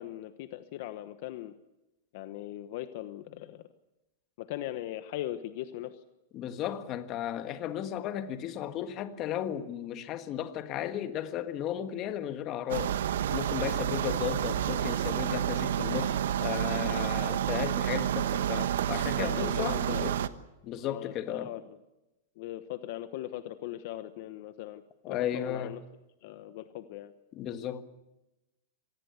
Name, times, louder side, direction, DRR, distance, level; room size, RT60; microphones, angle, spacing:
voice 1, 0.0-1.5 2.1-3.6 4.4-6.0 19.2-20.1 20.8-21.6 22.4-25.8 26.2-27.1, left 14 dB, 50° left, 1.1 m, -39 dB
voice 2, 6.3-13.0 13.3-20.2 20.6-21.5 25.0-25.7 27.3-27.8, left 10 dB, 30° left, 1.5 m, -35 dB
sound 1, 12.7-20.3, right 10 dB, 75° right, 1.2 m, -29 dB
26.0 x 19.0 x 8.1 m
supercardioid pair, 155°, 0 cm